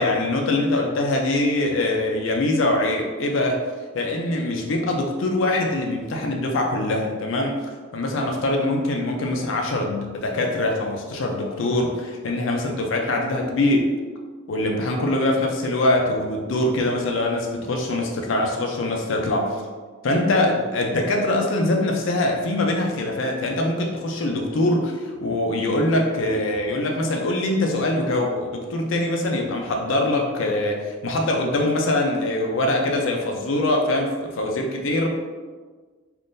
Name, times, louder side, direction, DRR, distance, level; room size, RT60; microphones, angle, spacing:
voice 1, 0.0-3.6 3.9-7.6 7.9-13.9 14.5-19.5 20.0-35.1, left 1 dB, 65° left, 1 dB, 0.5 m, -23 dB
3.6 x 2.5 x 2.5 m, 1.4 s
head